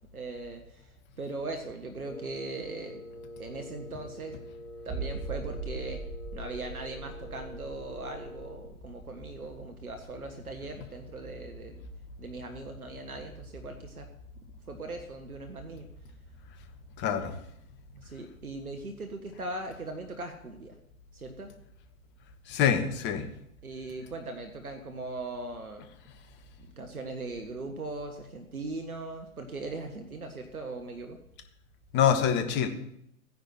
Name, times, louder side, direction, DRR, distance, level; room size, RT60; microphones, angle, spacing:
voice 1, 0.1-3.0 3.4-4.4 4.8-6.0 6.3-11.8 12.2-14.1 14.7-15.9 17.9-20.8 21.1-21.5 23.6-25.9 26.6-31.2, right 2 dB, 85° right, 5 dB, 1.6 m, -39 dB
Wind instrument woodwind instrument, 2.0-8.8, left 1 dB, 75° left, 2.9 m, -46 dB
sound 1, 4.9-10.3 10.6-10.7 11.2-11.3, right 3 dB, 15° right, 1.9 m, -40 dB
voice 2, 17.0-17.3 22.5-23.2 31.9-32.7, left 8 dB, 25° left, 8 dB, 1.4 m, -25 dB
15.0 x 10.5 x 4.4 m, 0.74 s
figure-of-eight pair, 115°, 42 cm